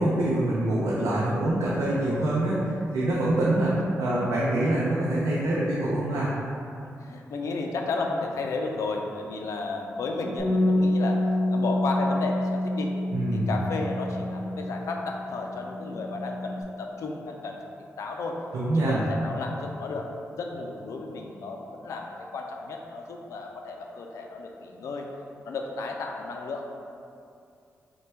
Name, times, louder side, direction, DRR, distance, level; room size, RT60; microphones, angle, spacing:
voice 1, 0.0-3.7 4.0-6.3 13.1-13.5 18.5-19.0, right 1 dB, 85° right, -7 dB, 0.5 m, -25 dB
voice 2, 7.0-11.2 11.5-12.9 13.3-17.6 18.0-18.4 18.7-20.1 20.4-25.1 25.5-26.7, left 3 dB, 80° left, 1 dB, 0.4 m, -33 dB
Bass guitar, 10.4-15.1 15.3-16.6, left 1 dB, 5° right, 0.9 m, -27 dB
3.3 x 2.2 x 4.3 m, 2.5 s
cardioid pair, 90°, 5 cm